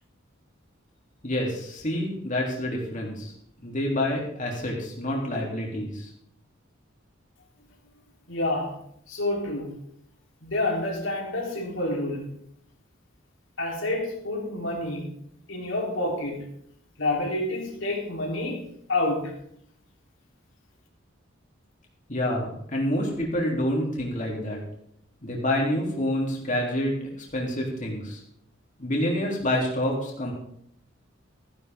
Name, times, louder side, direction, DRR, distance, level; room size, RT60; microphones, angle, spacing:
voice 1, 1.2-3.3 3.6-6.1 22.1-24.6 25.2-28.2 28.8-30.3, left 1 dB, 40° left, -2 dB, 3.3 m, -28 dB
voice 2, 8.3-8.8 9.1-9.7 10.4-12.3 13.6-15.1 15.5-16.4 17.0-18.6 18.9-19.3, left 2 dB, 70° left, -1 dB, 3.7 m, -28 dB
15.5 x 11.0 x 3.7 m, 0.69 s
head